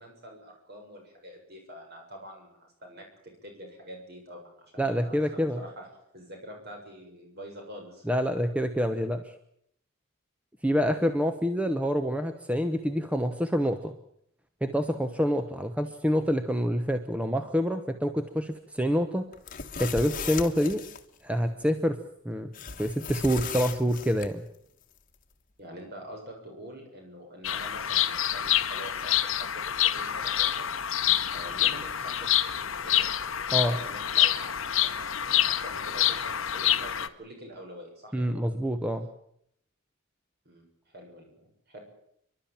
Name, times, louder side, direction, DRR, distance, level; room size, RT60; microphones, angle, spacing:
voice 1, 0.0-3.1 3.4-5.9 6.1-8.1 10.7-11.1 25.6-30.7 30.9-32.4 32.8-33.1 33.7-38.4 40.5-41.4 41.7-41.8, right 1 dB, 50° right, 2 dB, 6.9 m, -46 dB
voice 2, 4.8-5.6 8.1-9.2 10.6-13.9 14.6-19.3 19.8-20.8 21.2-22.0 22.2-22.5 22.8-24.4 33.5-33.8 38.1-39.1, equal, 5° right, 8 dB, 1.0 m, -27 dB
sound 1, 19.3-21.0 22.5-24.3, left 6 dB, 40° left, 1.3 m, -37 dB
Bird vocalization bird call bird song, 27.4-37.1, left 11 dB, 65° left, 1.0 m, -27 dB
30.0 x 12.0 x 8.9 m, 0.73 s
head